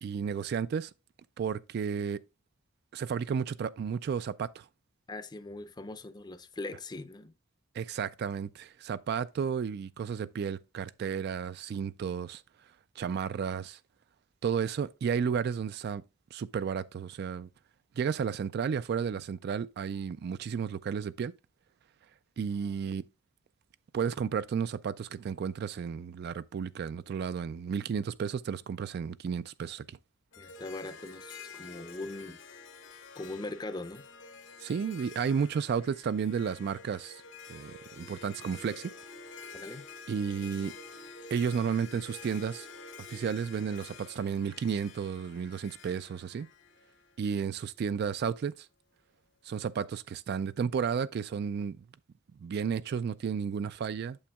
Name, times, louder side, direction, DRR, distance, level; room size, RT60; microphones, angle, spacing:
voice 1, 0.0-0.9 1.4-2.2 2.9-4.7 7.7-12.4 13.0-13.8 14.4-16.0 16.3-17.5 18.0-21.3 22.4-23.0 23.9-30.0 34.6-37.2 37.5-38.9 40.1-40.7 41.3-42.7 43.1-46.5 47.2-48.7 49.4-51.8 52.4-54.2, right 6 dB, 55° right, 0.3 m, -32 dB
voice 2, 5.1-7.3 30.4-32.4 33.2-34.0 39.5-39.8, left 2 dB, 20° left, 0.5 m, -41 dB
Harp, 30.3-47.6, left 4 dB, 70° left, 1.0 m, -49 dB
8.6 x 7.0 x 2.2 m
head